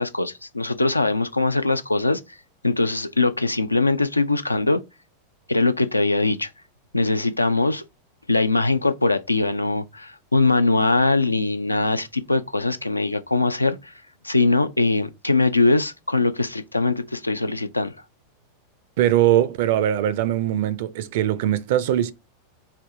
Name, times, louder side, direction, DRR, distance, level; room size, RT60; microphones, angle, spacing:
voice 1, 0.0-2.2 2.6-4.8 5.5-6.5 6.9-7.8 8.3-13.9 14.2-17.9, left 3 dB, 85° left, 0.3 m, -21 dB
voice 2, 19.0-22.1, right 12 dB, 55° right, 0.4 m, -21 dB
3.3 x 2.7 x 2.6 m
figure-of-eight pair, 90°, 0 cm